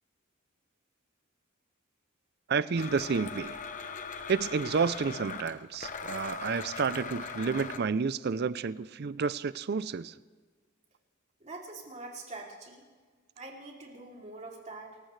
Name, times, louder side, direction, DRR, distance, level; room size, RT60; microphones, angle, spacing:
voice 1, 2.5-3.6 4.3-10.1, right 5 dB, 50° right, 0.4 m, -30 dB
Domestic sounds home sounds, 2.8-7.8, left 5 dB, 40° left, 0.9 m, -40 dB
voice 2, 11.4-12.9 13.4-15.0, right 2 dB, 35° right, 2.9 m, -44 dB
28.5 x 15.0 x 3.3 m
head